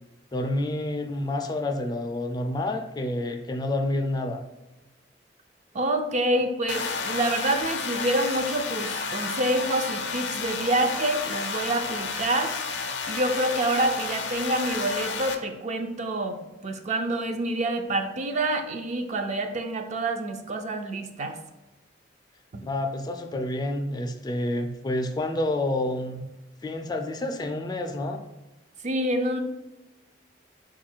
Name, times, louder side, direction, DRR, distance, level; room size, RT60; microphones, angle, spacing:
voice 1, 0.3-4.4 22.6-26.2 26.6-28.2, left 1 dB, 25° left, 5 dB, 0.3 m, -29 dB
voice 2, 5.7-12.5 13.1-21.4 22.5-22.6 28.8-29.4, right 1 dB, 40° right, 5 dB, 0.4 m, -27 dB
sound 1, 6.7-15.3, left 5 dB, 75° left, 0.5 m, -31 dB
4.6 x 2.4 x 4.4 m, 1.0 s
head